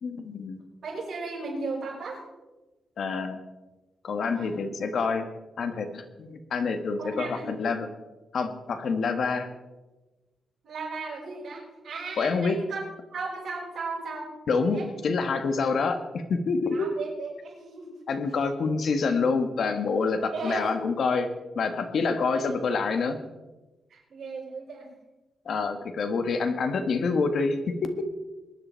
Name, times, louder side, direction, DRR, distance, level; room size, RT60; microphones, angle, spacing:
voice 1, 0.0-0.6 3.0-3.4 4.0-5.3 5.6-7.9 8.3-9.5 12.2-12.6 14.5-16.9 18.1-21.3 21.5-23.2 25.4-28.1, left 4 dB, 60° left, 8 dB, 1.5 m, -27 dB
voice 2, 0.8-2.2 4.2-4.5 7.0-7.5 10.6-12.8 13.1-14.3 14.7-14.9 16.7-18.0 20.3-20.9 22.3-22.6 23.9-24.9, right 3 dB, 55° right, -9 dB, 6.0 m, -36 dB
23.0 x 10.0 x 4.5 m, 1.1 s
wide cardioid pair, 125°, 0 cm